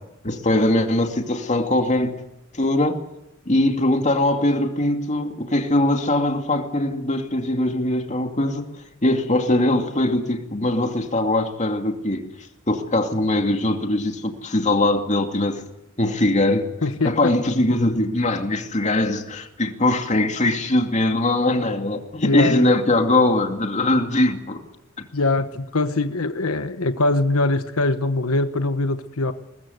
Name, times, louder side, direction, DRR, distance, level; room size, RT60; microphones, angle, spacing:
voice 1, 0.2-2.1 2.5-3.0 3.5-8.7 9.0-12.2 12.7-15.6 16.0-16.7 17.0-24.6, left 1 dB, 35° left, 2.5 m, -21 dB
voice 2, 16.8-17.3 22.2-22.8 25.1-29.3, left 2 dB, 85° left, 1.2 m, -22 dB
21.5 x 21.0 x 8.0 m
head